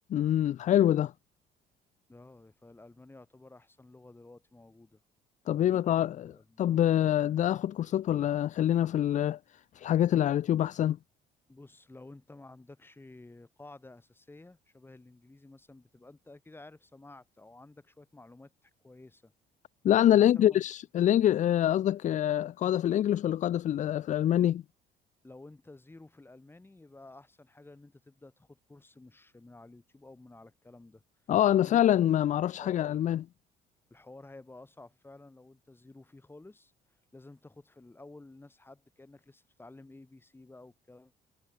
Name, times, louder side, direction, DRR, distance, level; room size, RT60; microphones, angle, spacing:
voice 1, 0.1-1.1 5.5-6.3 6.6-9.4 9.8-11.0 19.8-24.6 31.3-33.2, left 11 dB, 45° left, 0.5 m, -25 dB
voice 2, 2.1-5.0 5.6-6.7 11.5-19.3 20.2-20.6 25.2-31.0 31.6-31.8 32.6-33.1 33.9-36.7 37.1-41.1, left 2 dB, 15° left, 6.9 m, -52 dB
cardioid pair, 110°, 17 cm